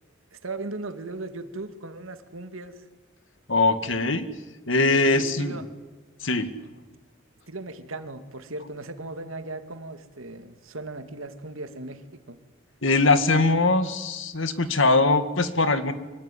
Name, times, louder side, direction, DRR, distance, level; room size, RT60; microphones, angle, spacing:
voice 1, 0.3-2.9 5.1-5.7 7.5-12.4, right 2 dB, 80° right, 8 dB, 2.2 m, -37 dB
voice 2, 3.5-4.2 4.7-5.6 6.2-6.5 12.8-15.9, left 3 dB, 70° left, 10 dB, 2.0 m, -21 dB
24.5 x 22.0 x 9.9 m, 1.3 s
head